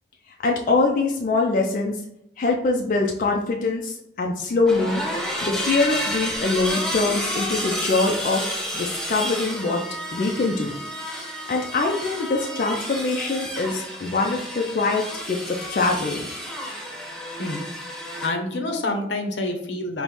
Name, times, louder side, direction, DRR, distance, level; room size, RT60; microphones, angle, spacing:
voice 1, 0.4-2.0 2.4-5.0 5.4-8.5 8.7-9.8 10.1-10.8 11.3-16.3, left 3 dB, 45° left, 0 dB, 0.3 m, -23 dB
sound 1, 4.7-18.3, equal, 5° left, 0.7 m, -31 dB
voice 2, 18.2-20.0, left 2 dB, 80° left, 4 dB, 0.6 m, -27 dB
5.1 x 2.1 x 2.9 m, 0.79 s
head